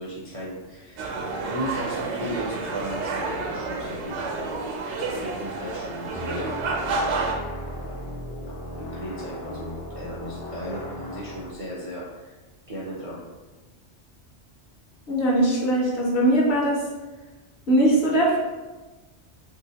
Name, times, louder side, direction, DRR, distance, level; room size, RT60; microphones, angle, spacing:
voice 1, 0.0-4.5 4.9-6.5 7.7-8.0 8.4-12.3 12.7-13.2, equal, 45° right, -6 dB, 0.5 m, -36 dB
sound 1, 1.0-7.3, right 3 dB, 80° right, 0.9 m, -30 dB
sound 2, 6.1-11.5, left 1 dB, 35° left, 0.4 m, -36 dB
voice 2, 15.1-16.8 17.7-18.4, right 1 dB, 65° left, -3 dB, 1.0 m, -20 dB
3.3 x 2.7 x 2.8 m, 1.2 s
omnidirectional pair, 1.2 m